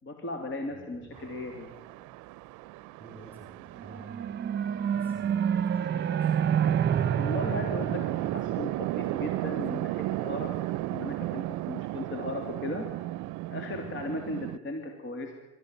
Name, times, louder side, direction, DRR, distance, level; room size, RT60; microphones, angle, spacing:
voice 1, 0.0-1.7 7.1-10.5 10.8-12.9 13.5-15.3, left 2 dB, 40° left, 3 dB, 3.2 m, -37 dB
voice 2, 0.7-1.3 3.0-4.5 4.8-6.7 13.7-13.9, right 1 dB, 5° right, 2 dB, 5.2 m, -51 dB
Chatter / Traffic noise roadway noise / Train, 1.1-14.6, right 17 dB, 75° right, 0.6 m, -35 dB
sound 1, 3.8-9.3, right 8 dB, 35° right, 1.2 m, -29 dB
25.0 x 14.0 x 9.2 m, 1.1 s
cardioid pair, 100°, 30 cm